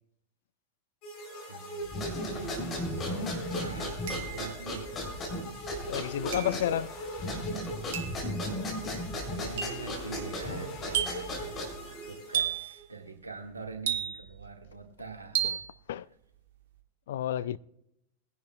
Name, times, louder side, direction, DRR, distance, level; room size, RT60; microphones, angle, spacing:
sound 1, 1.0-12.9, right 1 dB, 40° left, 4.2 m, -41 dB
voice 1, 1.5-2.1 2.3-2.7 3.0-4.9 9.3-15.6 17.1-17.2, right 4 dB, 80° right, 2.0 m, -44 dB
sound 2, 1.9-11.9, left 1 dB, 25° left, 3.8 m, -36 dB
sound 3, 2.9-3.0 4.1-4.6 6.3-6.7 7.9-8.3 9.6-9.9 10.9-11.4 12.3-12.8 13.9-14.4 15.4-15.7, right 9 dB, 55° right, 1.6 m, -32 dB
voice 2, 5.9-6.9 15.4-15.6 15.9-16.1 17.1-17.6, left 11 dB, 60° left, 0.3 m, -31 dB
21.5 x 11.0 x 2.4 m
figure-of-eight pair, 90°, 0 cm